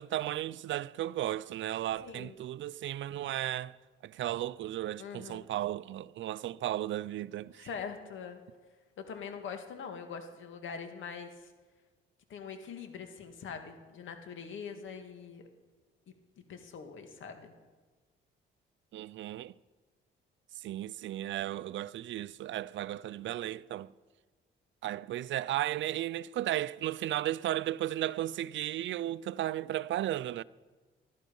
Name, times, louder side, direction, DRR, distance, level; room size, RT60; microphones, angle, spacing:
voice 1, 0.0-3.8 4.0-7.7 18.9-19.5 20.5-23.9 24.8-30.4, right 13 dB, 65° right, 0.5 m, -35 dB
voice 2, 2.0-2.3 5.0-5.5 7.6-8.4 9.0-11.5 12.3-15.4 16.5-17.5, left 6 dB, 70° left, 2.1 m, -43 dB
20.5 x 13.0 x 5.4 m
cardioid pair, 75°, 21 cm